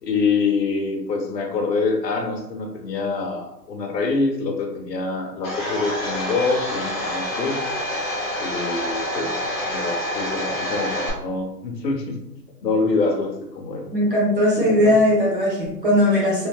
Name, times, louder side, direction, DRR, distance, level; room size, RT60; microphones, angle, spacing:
voice 1, 0.0-7.6 8.4-12.3 12.6-13.9 14.5-15.0, left 4 dB, 80° left, 2 dB, 0.9 m, -25 dB
Domestic sounds home sounds, 5.4-11.1, left 1 dB, 35° left, 0.9 m, -27 dB
voice 2, 13.9-16.5, left 1 dB, 35° right, -4 dB, 0.7 m, -18 dB
3.2 x 2.8 x 2.3 m, 0.87 s
hypercardioid pair, 180°, 49 cm